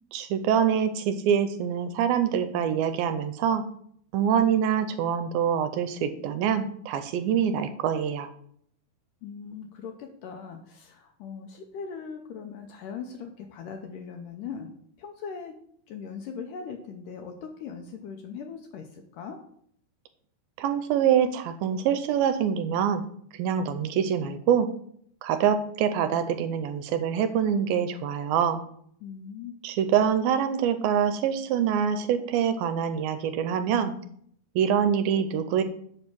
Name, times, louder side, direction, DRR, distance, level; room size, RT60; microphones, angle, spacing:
voice 1, 0.1-3.6 4.1-8.3 20.6-23.0 23.3-24.7 25.2-28.6 29.6-33.9 34.6-35.6, right 8 dB, 80° right, 10 dB, 2.3 m, -25 dB
voice 2, 9.2-14.7 15.0-15.6 15.9-19.4 29.0-29.5, left 6 dB, 80° left, 4 dB, 2.0 m, -40 dB
7.7 x 5.4 x 5.9 m, 0.66 s
omnidirectional pair, 4.4 m